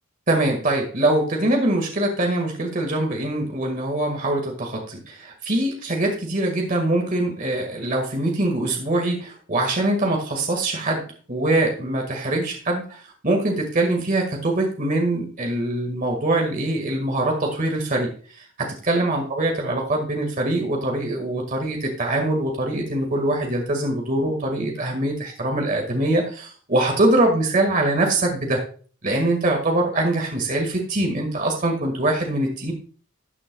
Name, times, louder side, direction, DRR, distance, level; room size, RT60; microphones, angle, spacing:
voice 1, 0.3-11.0 11.3-18.1 18.6-28.6 29.0-32.7, right 1 dB, 40° right, 2 dB, 1.9 m, -23 dB
13.0 x 9.0 x 2.3 m, 0.42 s
head